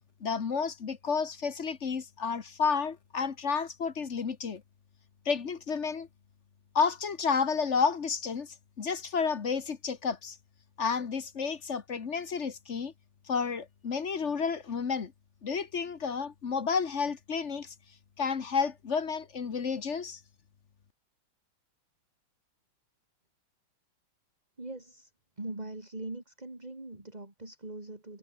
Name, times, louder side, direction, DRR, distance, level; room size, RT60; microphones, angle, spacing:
voice 1, 0.2-4.6 5.2-6.1 6.7-10.4 10.8-12.9 13.3-15.1 15.4-17.7 18.2-20.2, left 5 dB, 40° left, 1.3 m, -31 dB
voice 2, 24.6-25.1 25.4-28.2, right 2 dB, 15° right, 3.5 m, -41 dB
omnidirectional pair, 2.4 m